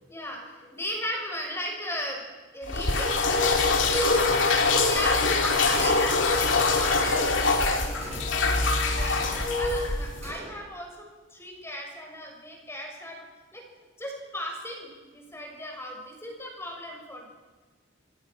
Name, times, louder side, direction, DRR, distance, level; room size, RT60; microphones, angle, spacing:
voice 1, 0.0-2.2 2.5-11.1 11.3-13.3 13.5-13.6 14.0-17.3, left 1 dB, 15° left, 1 dB, 6.4 m, -34 dB
sound 1, 2.7-10.3, left 3 dB, 70° left, 3.1 m, -24 dB
Gunshot gunfire, 5.6-6.4 6.9-7.5 8.0-8.6 9.2-9.8 10.2-10.8, right 2 dB, 35° right, 5.6 m, -43 dB
27.0 x 26.5 x 6.1 m, 1.3 s
head